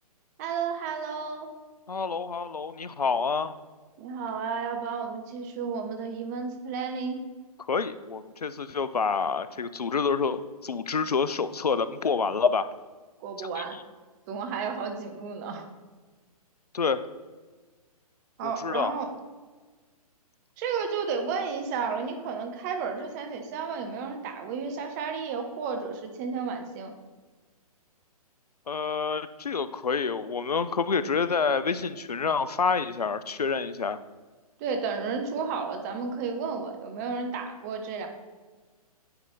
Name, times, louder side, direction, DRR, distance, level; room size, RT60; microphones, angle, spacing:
voice 1, 0.4-1.5 4.0-7.2 13.2-13.8 14.3-15.6 18.4-19.1 20.6-26.9 34.6-38.1, right 5 dB, 25° right, 5 dB, 0.8 m, -32 dB
voice 2, 1.9-3.5 7.7-12.7 13.4-13.6 16.7-17.0 18.4-18.9 28.7-34.0, left 5 dB, 85° left, 13 dB, 0.4 m, -28 dB
9.6 x 3.3 x 3.9 m, 1.4 s
figure-of-eight pair, 125°, 20 cm